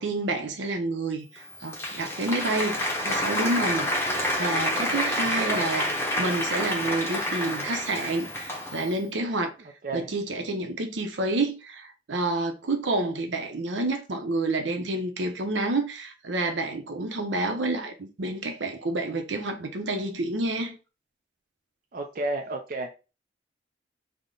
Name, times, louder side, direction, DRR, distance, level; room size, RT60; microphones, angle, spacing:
voice 1, 0.0-3.9 4.4-5.9 6.2-9.5 9.9-20.7, right 2 dB, 80° right, 0.7 m, -29 dB
Applause, 1.4-9.0, left 1 dB, 15° left, 0.7 m, -28 dB
voice 2, 5.2-5.6 9.8-10.1 21.9-22.9, right 2 dB, 50° right, 0.4 m, -31 dB
3.5 x 2.1 x 3.7 m
head